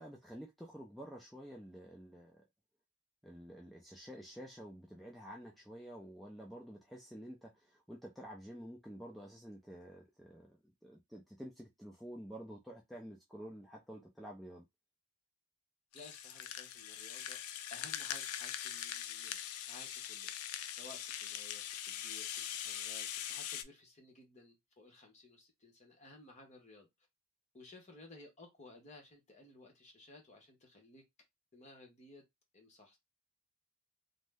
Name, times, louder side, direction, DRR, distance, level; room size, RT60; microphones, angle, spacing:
voice 1, 0.0-2.4 3.2-14.6, equal, ahead, 0.4 m, -50 dB
Rattle (instrument), 15.9-23.6, left 10 dB, 75° left, 0.4 m, -42 dB
voice 2, 15.9-17.4 17.7-19.4 19.7-20.3 20.8-26.9 27.5-31.0 31.5-32.2 32.5-33.0, left 2 dB, 30° left, 0.9 m, -57 dB
2.6 x 2.1 x 3.3 m
head